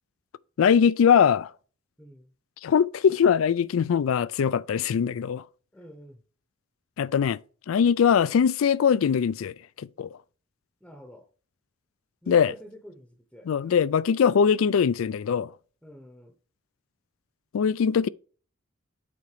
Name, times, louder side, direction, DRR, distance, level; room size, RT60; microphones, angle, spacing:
voice 1, 0.6-1.5 2.6-5.4 7.0-7.4 7.7-10.1 12.3-12.5 13.5-15.5 17.5-18.1, left 7 dB, 80° left, 0.4 m, -22 dB
voice 2, 2.0-2.3 5.7-6.2 10.8-11.3 12.2-13.8 15.8-16.3, equal, 5° left, 0.8 m, -48 dB
8.5 x 3.8 x 4.9 m
head